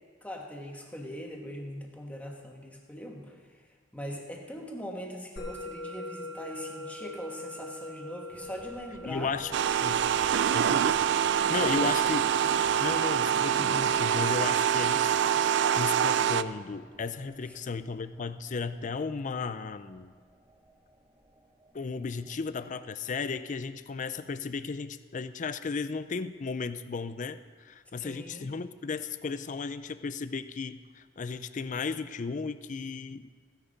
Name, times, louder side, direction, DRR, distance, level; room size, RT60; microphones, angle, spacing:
voice 1, 0.2-3.4 3.9-9.3 11.6-12.1 28.0-28.5, equal, 10° left, 0 dB, 1.4 m, -41 dB
Musical instrument, 5.4-16.0, left 2 dB, 80° left, 2.2 m, -45 dB
sound 1, 8.3-23.0, right 1 dB, 15° right, 0.8 m, -54 dB
voice 2, 9.0-9.6 9.8-10.0 10.5-10.8 11.3-12.3 12.8-15.1 15.8-20.1 21.7-33.3, left 4 dB, 40° left, 12 dB, 0.4 m, -34 dB
sound 2, 9.5-16.4, right 8 dB, 65° right, 0.3 m, -25 dB
15.0 x 10.0 x 4.0 m, 1.6 s
head